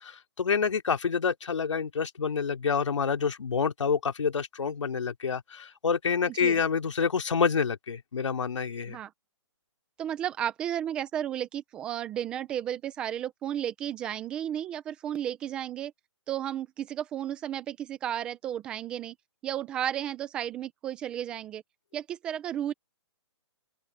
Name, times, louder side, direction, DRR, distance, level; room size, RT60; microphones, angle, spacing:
voice 1, 0.0-9.0, left 6 dB, 85° left, 3.0 m, -28 dB
voice 2, 6.3-6.6 8.9-9.1 10.0-15.9 16.3-19.1 19.4-21.6 21.9-22.7, right 10 dB, 5° right, 0.4 m, -33 dB
open air
hypercardioid pair, 175°, 15 cm